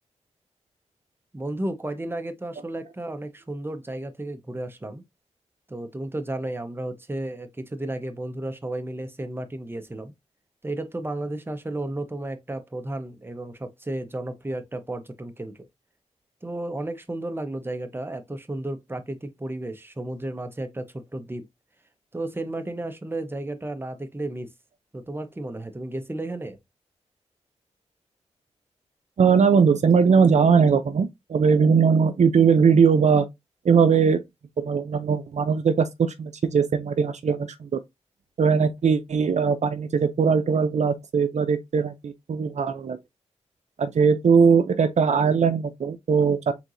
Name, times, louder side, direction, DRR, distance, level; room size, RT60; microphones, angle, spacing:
voice 1, 1.3-5.0 5.7-10.1 10.6-15.5 16.4-21.5 22.1-24.5 24.9-26.6, right 1 dB, 20° right, 0.9 m, -33 dB
voice 2, 29.2-33.3 33.6-34.2 34.6-37.8 38.4-43.0 43.8-46.5, right 6 dB, 75° right, 0.6 m, -20 dB
4.5 x 3.8 x 2.6 m
cardioid pair, 55°, 12 cm